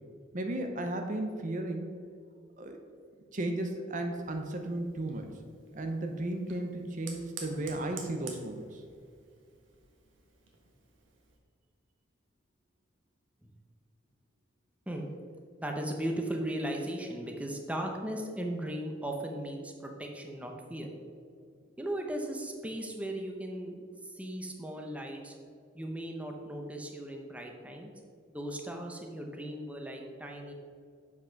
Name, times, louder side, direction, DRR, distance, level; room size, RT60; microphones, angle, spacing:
voice 1, 0.3-2.0 2.6-2.8 3.3-5.3 5.7-8.8, right 1 dB, 40° right, 4 dB, 0.7 m, -34 dB
Fire, 4.1-11.4, right 5 dB, 85° right, 1.6 m, -51 dB
voice 2, 15.6-20.9 21.8-25.3 25.7-27.9 28.3-30.5, right 1 dB, 5° right, 2 dB, 0.8 m, -37 dB
7.5 x 6.0 x 5.9 m, 2.2 s
head